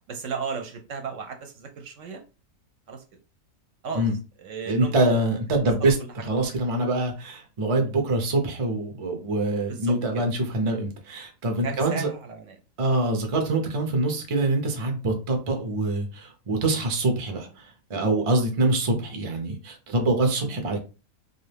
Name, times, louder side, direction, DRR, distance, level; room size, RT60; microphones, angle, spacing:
voice 1, 0.1-2.2 2.9-3.0 3.8-4.0 4.4-5.2 5.8-5.9 9.7-10.3 11.6-12.5 17.3-17.5, right 5 dB, 65° right, 0.9 m, -35 dB
voice 2, 4.7-6.0 6.2-12.1 12.8-17.5 17.9-20.8, right 2 dB, 45° right, 0.4 m, -25 dB
2.6 x 2.4 x 3.3 m
omnidirectional pair, 1.5 m